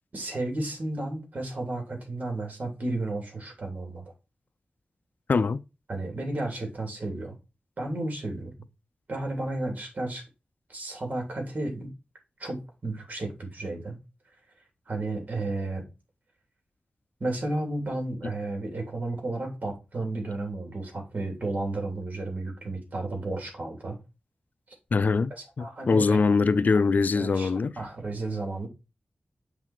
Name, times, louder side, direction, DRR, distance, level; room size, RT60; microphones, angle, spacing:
voice 1, 0.1-4.0 5.9-7.3 7.8-8.5 9.1-10.2 10.7-11.9 12.4-14.0 14.9-15.9 17.2-24.0 25.3-26.2 26.7-26.8 27.1-27.5 27.8-28.7, right 2 dB, 55° right, 3.3 m, -33 dB
voice 2, 24.9-25.3 25.6-27.7, left 4 dB, 60° left, 0.4 m, -22 dB
7.5 x 4.0 x 4.4 m
wide cardioid pair, 85°, 3 cm